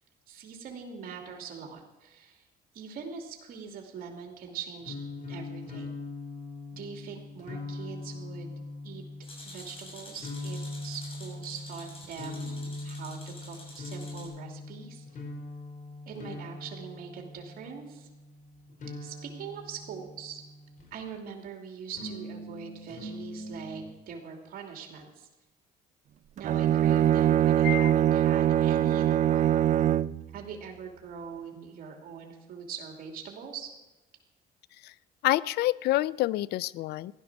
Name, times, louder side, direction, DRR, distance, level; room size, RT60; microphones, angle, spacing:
voice 1, 0.3-2.4 2.7-5.0 5.3-6.0 6.7-8.5 8.8-9.0 9.4-15.1 16.1-18.1 19.0-20.4 20.9-25.3 26.4-29.7 30.3-33.7, right 6 dB, 60° right, 2 dB, 2.7 m, -42 dB
sound 1, 4.8-21.1 21.9-23.9, left 2 dB, 50° left, 5.2 m, -41 dB
sound 2, 9.2-14.3, left 2 dB, 35° left, 6.4 m, -48 dB
Bowed string instrument, 26.4-30.2, right 11 dB, 45° right, 0.5 m, -23 dB
voice 2, 35.2-37.1, left 16 dB, 70° left, 21 dB, 0.4 m, -27 dB
15.5 x 11.5 x 6.1 m, 1.1 s
cardioid pair, 110°, 17 cm